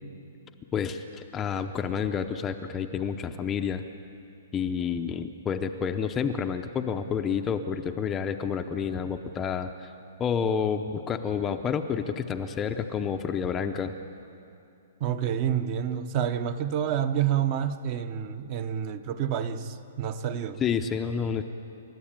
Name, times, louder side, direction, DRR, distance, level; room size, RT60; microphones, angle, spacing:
voice 1, 0.7-3.8 4.5-9.9 10.2-13.9 20.6-21.4, left 7 dB, 15° left, 6 dB, 0.6 m, -29 dB
voice 2, 15.0-20.6, right 9 dB, 30° right, 11 dB, 0.9 m, -28 dB
29.5 x 13.5 x 8.9 m, 2.6 s
hypercardioid pair, 170°, 0 cm